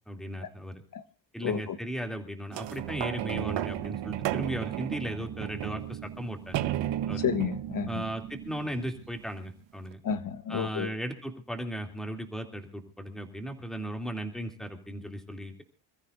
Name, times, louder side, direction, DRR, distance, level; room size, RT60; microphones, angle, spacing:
voice 1, 0.1-0.8 1.3-6.5 7.1-7.2 7.9-10.0 10.5-15.6, right 1 dB, ahead, 2.8 m, -36 dB
voice 2, 1.4-1.8 7.2-8.0 10.0-10.9, left 7 dB, 45° left, 1.4 m, -31 dB
sound 1, 2.5-9.3 9.9-10.0, right 12 dB, 65° right, 1.1 m, -34 dB
27.0 x 14.0 x 2.6 m
cardioid pair, 115°, 47 cm